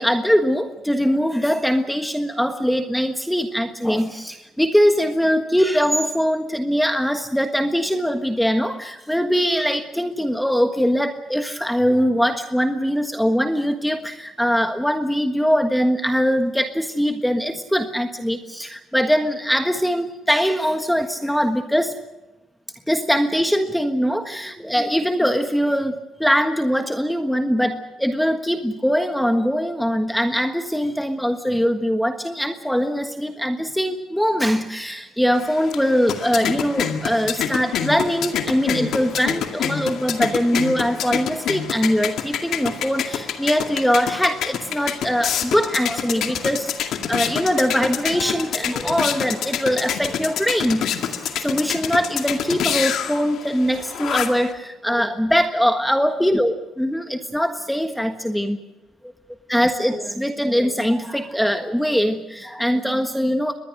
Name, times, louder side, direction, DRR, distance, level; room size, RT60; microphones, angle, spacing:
voice 1, 0.0-21.9 22.9-58.6 59.5-63.5, equal, ahead, 7 dB, 1.4 m, -22 dB
sound 1, 35.3-54.5, left 8 dB, 70° left, 2.1 m, -27 dB
25.5 x 20.0 x 6.5 m, 1.0 s
supercardioid pair, 70°, 0 cm